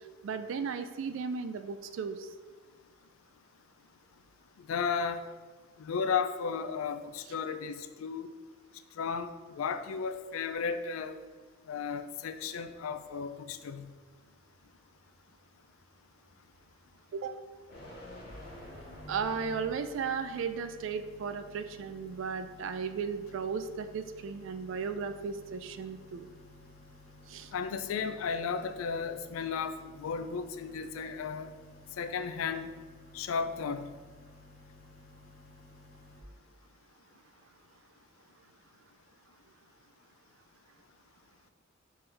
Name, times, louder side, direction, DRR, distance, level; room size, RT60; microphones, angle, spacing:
voice 1, 0.2-2.3 17.1-17.4 19.1-26.3 27.3-27.5, right 5 dB, 65° right, 10 dB, 0.3 m, -35 dB
voice 2, 4.6-5.2 5.8-8.3 9.0-9.3 9.6-11.2 11.7-13.9 27.5-31.5 32.0-32.7 33.1-33.9, left 6 dB, 85° left, 10 dB, 0.3 m, -34 dB
sound 1, 13.3-20.1, left 1 dB, 55° left, 1.4 m, -50 dB
sound 2, 18.3-36.2, left 3 dB, 40° left, 1.2 m, -55 dB
4.2 x 3.7 x 3.3 m, 1.4 s
head